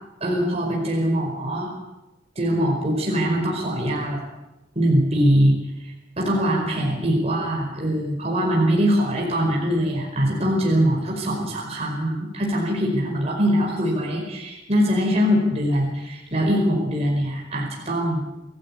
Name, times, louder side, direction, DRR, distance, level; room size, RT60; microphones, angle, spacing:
voice 1, 0.2-1.7 2.3-4.2 4.7-18.2, equal, 35° right, -1 dB, 5.1 m, -22 dB
27.5 x 15.5 x 8.8 m, 1.0 s
head